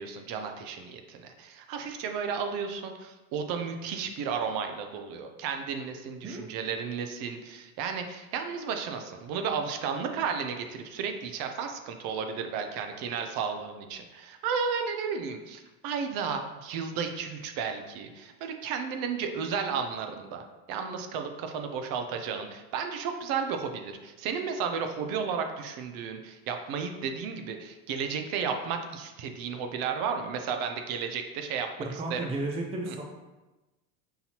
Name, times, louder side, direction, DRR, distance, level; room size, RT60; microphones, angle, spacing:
voice 1, 0.0-32.3 32.9-33.0, right 6 dB, 55° right, 6 dB, 0.6 m, -33 dB
voice 2, 31.9-33.0, right 2 dB, 15° right, 1 dB, 0.4 m, -33 dB
5.8 x 2.7 x 2.9 m, 1.1 s
supercardioid pair, 105°, 43 cm